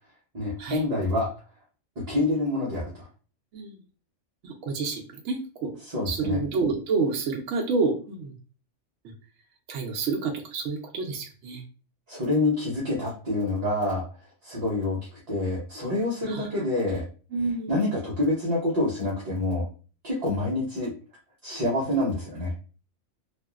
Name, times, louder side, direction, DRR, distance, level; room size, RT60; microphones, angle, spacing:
voice 1, 0.3-1.3 2.0-3.1 5.9-6.4 12.1-14.0 14.4-15.0 15.3-17.0 17.7-19.7 20.0-20.9 21.4-22.5, left 2 dB, 40° right, -6 dB, 0.7 m, -27 dB
voice 2, 4.4-5.7 6.1-8.3 9.7-11.6 16.3-16.6 17.3-17.9, right 4 dB, 70° right, 0 dB, 0.8 m, -29 dB
2.8 x 2.5 x 2.3 m, 0.37 s
omnidirectional pair, 1.3 m